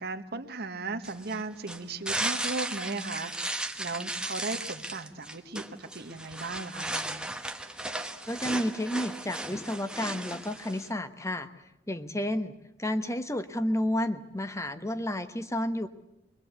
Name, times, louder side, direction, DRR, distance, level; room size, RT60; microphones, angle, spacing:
voice 1, 0.0-7.3, right 3 dB, 55° right, 8 dB, 1.6 m, -37 dB
sound 1, 1.0-10.9, right 2 dB, 5° right, 1.2 m, -36 dB
voice 2, 8.3-11.5 11.9-12.5 12.8-15.9, left 1 dB, 15° left, 10 dB, 1.2 m, -31 dB
24.0 x 21.5 x 8.2 m, 0.89 s
head